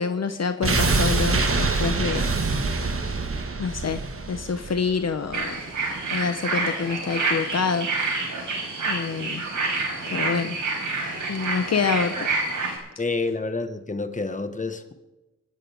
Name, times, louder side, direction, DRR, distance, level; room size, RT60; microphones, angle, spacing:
voice 1, 0.0-2.2 3.6-4.0 4.3-5.5 6.1-8.1 8.8-9.4 10.1-10.6 11.3-12.3, left 5 dB, 60° left, 9 dB, 0.9 m, -26 dB
sound 1, 0.6-5.6 5.9-6.0, right 3 dB, 45° right, 1.7 m, -25 dB
sound 2, 5.3-12.8, right 3 dB, 85° right, 5.1 m, -28 dB
voice 2, 13.0-14.9, left 3 dB, 25° left, 8 dB, 1.4 m, -28 dB
28.0 x 10.0 x 3.5 m, 1.1 s
wide cardioid pair, 80°, 30 cm